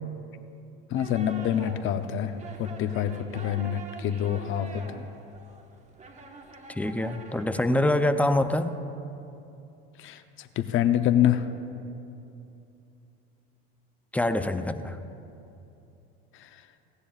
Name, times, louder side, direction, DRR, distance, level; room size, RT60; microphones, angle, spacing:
voice 1, 0.9-5.1 10.0-11.5, left 10 dB, 45° left, 9 dB, 0.7 m, -26 dB
sound 1, 0.9-8.0, right 3 dB, 25° right, 1.4 m, -45 dB
voice 2, 6.7-8.7 14.1-15.0, left 1 dB, 5° left, 10 dB, 0.5 m, -25 dB
18.0 x 15.5 x 2.4 m, 2.8 s
hypercardioid pair, 90°, 30 cm